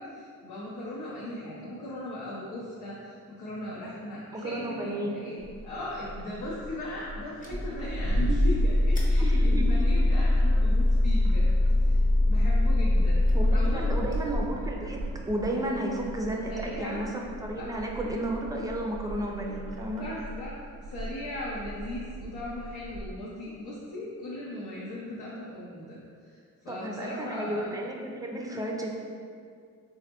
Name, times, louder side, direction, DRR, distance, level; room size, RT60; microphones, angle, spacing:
voice 1, 0.0-11.5 11.8-13.2 13.5-14.0 16.5-17.0 17.6-17.7 20.0-20.5 20.9-26.4 26.6-27.7, left 1 dB, 75° left, -7 dB, 0.6 m, -38 dB
voice 2, 4.3-5.2 8.3-8.5 9.2-9.9 13.3-15.0 15.3-20.1 25.1-25.2 26.7-28.9, right 1 dB, 10° right, 0 dB, 0.4 m, -33 dB
Bird, 5.4-23.1, right 1 dB, 65° right, 0.5 m, -41 dB
sound 1, 7.4-14.8, left 1 dB, 20° left, 0.7 m, -23 dB
3.4 x 2.1 x 2.8 m, 2.2 s
supercardioid pair, 60°, 36 cm